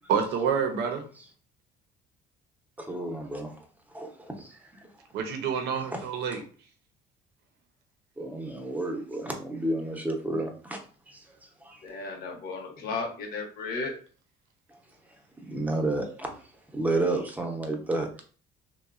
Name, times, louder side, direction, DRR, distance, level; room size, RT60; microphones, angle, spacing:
voice 1, 0.1-1.0 5.1-6.4, right 7 dB, 85° right, 0.5 m, -27 dB
voice 2, 2.8-3.5 3.9-4.9 8.2-10.8 11.1-11.8 15.4-16.4 16.7-18.1, right 2 dB, 10° right, 0.6 m, -31 dB
voice 3, 11.8-13.9, left 3 dB, 65° left, 0.8 m, -34 dB
3.0 x 2.1 x 2.4 m
cardioid pair, 110°, 17 cm